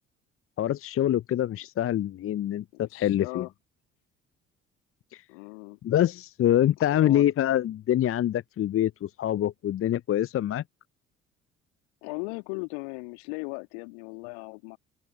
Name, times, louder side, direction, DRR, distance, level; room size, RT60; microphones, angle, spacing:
voice 1, 0.6-3.5 5.1-5.2 5.8-10.6, left 12 dB, 35° left, 0.8 m, -25 dB
voice 2, 2.7-3.5 5.3-5.8 6.8-7.2 12.0-14.8, left 40 dB or more, 65° left, 2.5 m, -38 dB
figure-of-eight pair, 55°, 37 cm